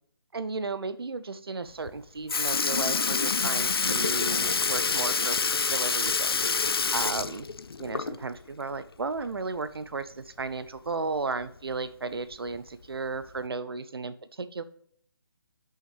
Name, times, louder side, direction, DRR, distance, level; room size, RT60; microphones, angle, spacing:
voice 1, 0.3-5.4 5.7-7.5 7.8-14.6, right 4 dB, 80° right, 13 dB, 0.5 m, -34 dB
Sink (filling or washing) / Liquid, 1.9-2.0 2.3-8.4 8.7-8.8 10.4-10.5 11.4-11.5 12.3-12.6 13.4-13.5, left 5 dB, 85° left, 0.4 m, -27 dB
10.5 x 5.6 x 3.3 m, 0.68 s
figure-of-eight pair, 145°, 12 cm